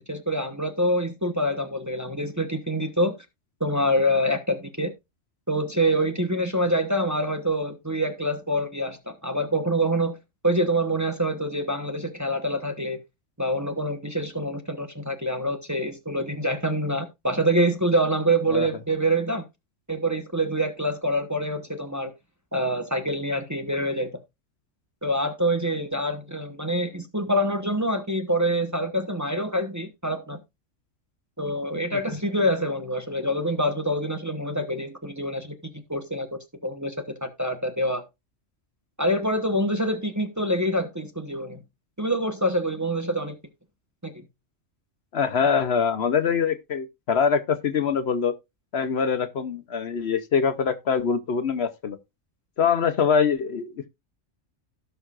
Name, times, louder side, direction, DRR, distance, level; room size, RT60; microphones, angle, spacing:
voice 1, 0.1-3.1 3.6-4.9 5.5-10.2 10.4-13.0 13.4-19.5 19.9-22.1 22.5-24.1 25.0-30.4 31.4-38.0 39.0-41.6 42.0-43.4 44.0-44.1, right 1 dB, 15° right, 1.0 m, -26 dB
voice 2, 45.1-48.3 48.7-52.0 52.6-53.9, left 6 dB, 60° left, 1.0 m, -24 dB
17.0 x 5.7 x 2.4 m
omnidirectional pair, 1.3 m